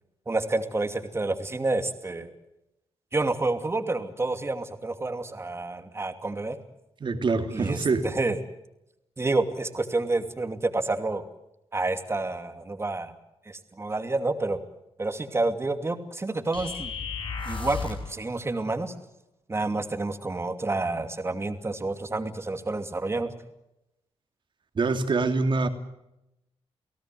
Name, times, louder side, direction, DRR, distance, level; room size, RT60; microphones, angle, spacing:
voice 1, 0.3-2.3 3.1-6.6 7.5-8.4 9.2-11.2 11.7-13.1 13.5-14.6 15.0-16.9 17.5-18.9 19.5-23.3, right 2 dB, 25° right, 7 dB, 2.6 m, -29 dB
voice 2, 7.0-8.1 24.7-25.7, right 3 dB, 50° right, 7 dB, 2.9 m, -25 dB
sound 1, 16.5-18.1, left 5 dB, 55° left, 6.6 m, -33 dB
29.5 x 17.5 x 7.8 m, 0.87 s
cardioid pair, 95°, 10 cm